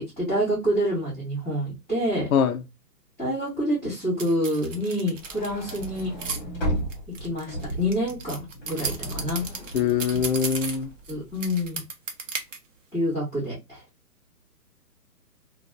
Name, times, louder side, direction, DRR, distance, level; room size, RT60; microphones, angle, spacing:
voice 1, 0.2-2.3 3.2-6.1 7.2-9.4 11.1-11.8 12.9-13.8, equal, 5° left, 2.1 m, -27 dB
sound 1, 4.2-6.4 6.9-11.1 11.4-12.6, right 5 dB, 50° right, 0.8 m, -34 dB
sound 2, 5.2-11.5, equal, 25° left, 1.3 m, -35 dB
voice 2, 9.7-10.9, left 7 dB, 60° left, 0.6 m, -23 dB
3.8 x 2.4 x 2.4 m
hypercardioid pair, 165°, 49 cm